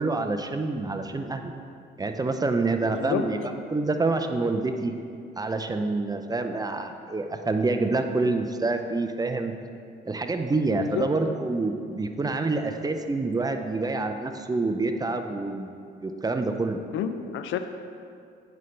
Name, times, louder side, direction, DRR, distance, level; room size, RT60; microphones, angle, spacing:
voice 1, 0.0-1.5 2.0-3.4 3.7-4.9 5.4-9.5 10.1-15.7 16.0-16.8, right 3 dB, 20° right, 6 dB, 0.5 m, -27 dB
voice 2, 2.9-3.3 10.7-11.1 16.9-17.6, left 9 dB, 80° left, 8 dB, 0.5 m, -29 dB
9.1 x 5.7 x 3.2 m, 2.4 s
cardioid pair, 90°, 20 cm